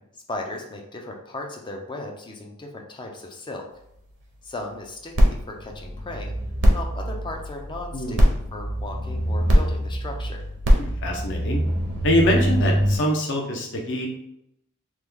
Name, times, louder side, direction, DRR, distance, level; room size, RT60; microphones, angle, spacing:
voice 1, 0.3-3.7 4.4-6.3 6.7-10.4, left 2 dB, 20° left, 1 dB, 0.4 m, -36 dB
sound 1, 5.2-13.0, equal, 55° right, 0.7 m, -22 dB
voice 2, 10.8-11.6 12.0-14.1, left 1 dB, 55° left, 1 dB, 0.7 m, -24 dB
3.0 x 2.2 x 3.5 m, 0.77 s
head